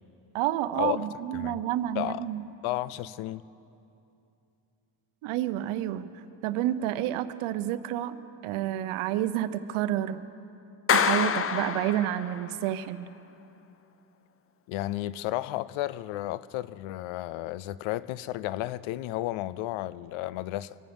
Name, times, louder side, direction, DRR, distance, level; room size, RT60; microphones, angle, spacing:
voice 1, 0.3-2.4 5.2-6.1 6.4-8.2 8.4-10.2 10.9-13.1, right 12 dB, 80° right, 0.8 m, -29 dB
voice 2, 2.0-2.3 2.6-3.4 14.7-20.8, left 15 dB, 75° left, 0.6 m, -33 dB
Clapping, 10.9-12.5, left 7 dB, 30° left, 0.6 m, -26 dB
24.0 x 9.3 x 5.3 m
supercardioid pair, 80°, 49 cm